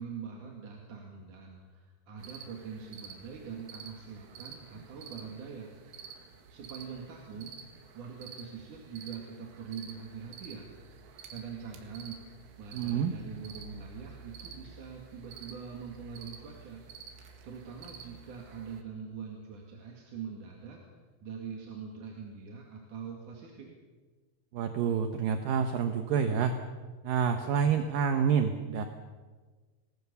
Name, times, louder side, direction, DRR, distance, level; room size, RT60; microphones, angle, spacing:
voice 1, 0.0-5.7 6.5-7.6 7.9-10.7 11.3-12.2 12.6-16.8 17.4-20.8 21.2-23.7, right 6 dB, 50° right, 0 dB, 3.4 m, -43 dB
sound 1, 2.2-18.8, right 6 dB, 90° right, 4.5 m, -50 dB
voice 2, 12.7-13.1 24.5-26.5 27.0-28.8, right 7 dB, 70° right, 6 dB, 2.2 m, -28 dB
27.0 x 19.5 x 7.1 m, 1.4 s
omnidirectional pair, 5.4 m